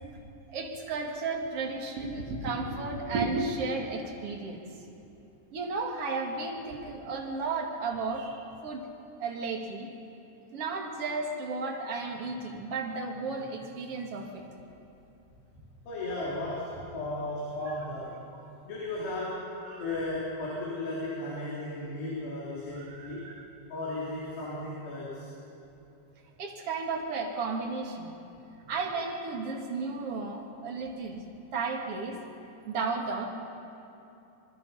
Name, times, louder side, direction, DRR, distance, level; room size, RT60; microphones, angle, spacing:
voice 1, 0.5-4.6 5.5-8.9 9.2-9.9 10.5-14.4 18.4-18.5 19.6-20.1 22.8-23.5 26.4-28.2 28.7-31.2 31.5-32.2 32.7-33.2, right 3 dB, 50° right, 0 dB, 1.9 m, -33 dB
voice 2, 15.9-18.2 18.6-19.5 19.8-23.3 23.7-25.3, left 2 dB, 60° left, -6 dB, 5.4 m, -35 dB
26.0 x 22.5 x 5.6 m, 2.9 s
omnidirectional pair, 5.7 m